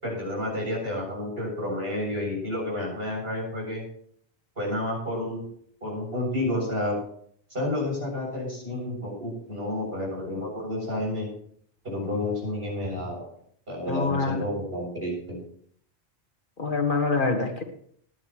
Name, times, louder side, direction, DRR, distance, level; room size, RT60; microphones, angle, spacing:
voice 1, 0.0-3.8 4.6-5.5 5.8-7.0 7.5-11.3 11.8-13.3 13.7-15.4, left 1 dB, 60° right, -2 dB, 7.9 m, -30 dB
voice 2, 13.9-14.4 16.6-17.6, left 4 dB, 50° left, 3 dB, 1.9 m, -25 dB
20.0 x 11.0 x 3.1 m, 0.63 s
omnidirectional pair, 1.1 m